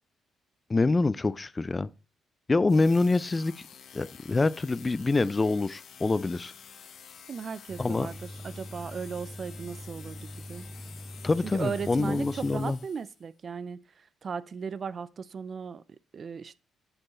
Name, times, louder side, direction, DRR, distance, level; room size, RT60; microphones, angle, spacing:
voice 1, 0.7-1.9 2.5-3.5 3.9-6.5 7.8-8.1 11.2-12.8, left 3 dB, 25° left, 0.3 m, -25 dB
sound 1, 2.7-13.2, left 7 dB, 65° left, 1.0 m, -50 dB
voice 2, 7.3-10.7 11.4-15.8 16.1-16.6, right 6 dB, 45° right, 0.4 m, -37 dB
sound 2, 7.7-12.7, equal, 10° right, 0.7 m, -43 dB
7.8 x 4.5 x 4.1 m
cardioid pair, 90°, 0 cm